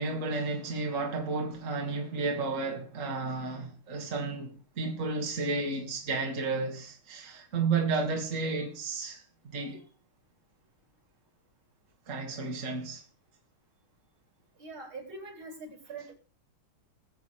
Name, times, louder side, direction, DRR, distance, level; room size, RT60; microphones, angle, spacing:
voice 1, 0.0-9.8 12.1-13.0, right 3 dB, 40° right, 2.1 m, -32 dB
voice 2, 14.6-16.1, right 3 dB, 75° right, 4.8 m, -43 dB
21.5 x 8.0 x 3.2 m
omnidirectional pair, 2.3 m